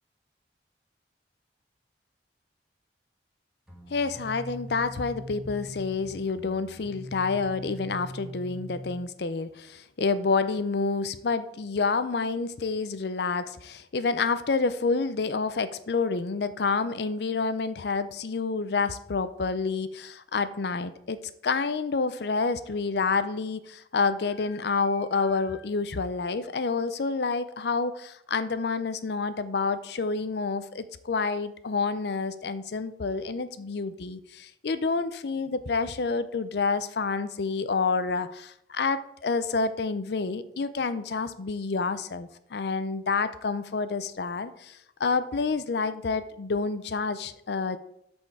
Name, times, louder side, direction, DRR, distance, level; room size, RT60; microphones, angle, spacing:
sound 1, 3.7-9.0, equal, 5° right, 1.5 m, -41 dB
voice 1, 3.9-21.2 21.4-47.8, left 4 dB, 65° left, 13 dB, 0.5 m, -28 dB
13.0 x 4.4 x 4.7 m, 0.78 s
head